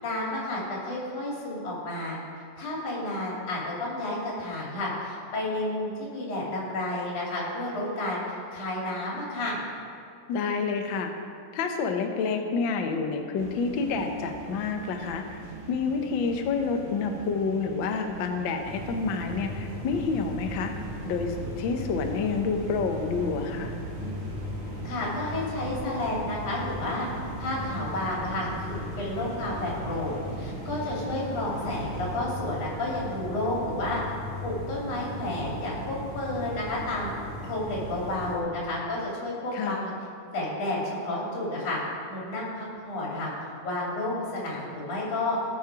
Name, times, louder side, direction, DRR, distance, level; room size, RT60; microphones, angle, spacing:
voice 1, 0.0-2.2 2.6-8.2 8.5-9.6 24.8-27.1 27.4-34.0 34.4-37.1 37.4-39.9 40.3-41.8 42.1-43.3 43.6-45.4, left 2 dB, 90° left, -5 dB, 4.3 m, -31 dB
voice 2, 10.3-11.1 11.5-15.4 15.7-20.7 21.0-23.7 39.5-39.9, left 5 dB, 70° left, 4 dB, 1.1 m, -28 dB
sound 1, 13.4-32.2, right 3 dB, 75° right, 2.9 m, -43 dB
sound 2, 18.6-38.4, equal, 55° left, 3.3 m, -37 dB
17.5 x 6.5 x 4.8 m, 2.4 s
omnidirectional pair, 3.4 m